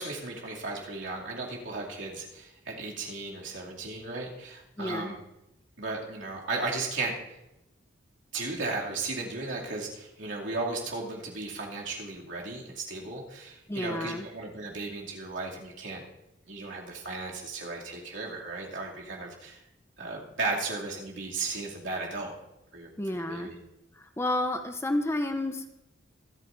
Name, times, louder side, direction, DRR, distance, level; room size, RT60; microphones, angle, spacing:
voice 1, 0.0-5.2 5.8-7.2 8.3-16.0 16.5-19.6 20.0-22.3 22.7-23.6, right 3 dB, 80° right, -3 dB, 2.6 m, -35 dB
voice 2, 4.8-5.1 13.7-14.3 23.0-23.5 24.0-25.6, left 1 dB, 15° left, 7 dB, 0.6 m, -30 dB
24.5 x 9.0 x 2.6 m, 0.91 s
head